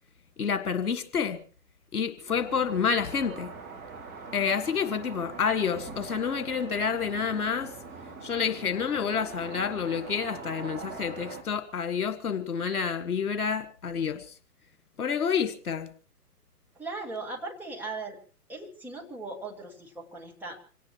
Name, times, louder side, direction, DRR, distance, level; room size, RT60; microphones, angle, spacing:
voice 1, 0.4-1.4 1.9-3.5 4.3-7.7 8.2-14.3 15.0-15.9, left 6 dB, 65° left, 10 dB, 1.8 m, -29 dB
sound 1, 2.3-11.4, right 4 dB, 20° right, 3.1 m, -43 dB
voice 2, 16.7-18.2 18.5-20.6, right 3 dB, 5° right, -2 dB, 1.5 m, -38 dB
25.5 x 17.5 x 3.0 m, 0.38 s
figure-of-eight pair, 130°, 47 cm